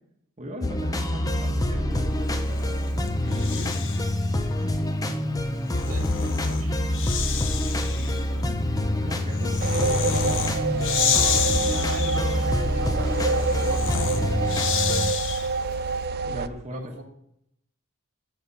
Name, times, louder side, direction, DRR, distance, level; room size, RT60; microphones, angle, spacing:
voice 1, 0.4-4.0 9.0-9.6 10.6-10.8 16.2-17.0, equal, 30° right, 0 dB, 1.1 m, -38 dB
sound 1, 0.6-15.1, left 1 dB, 15° left, 0.6 m, -26 dB
Breathing, 2.2-4.2 5.4-15.7, left 7 dB, 60° left, 0.8 m, -30 dB
voice 2, 5.8-6.8 7.9-8.6 9.4-9.9 11.1-14.3 16.7-17.0, right 1 dB, 80° right, 4 dB, 2.0 m, -39 dB
sound 2, 9.6-16.5, right 4 dB, 45° right, 0.4 m, -27 dB
8.2 x 6.7 x 5.3 m, 0.75 s
head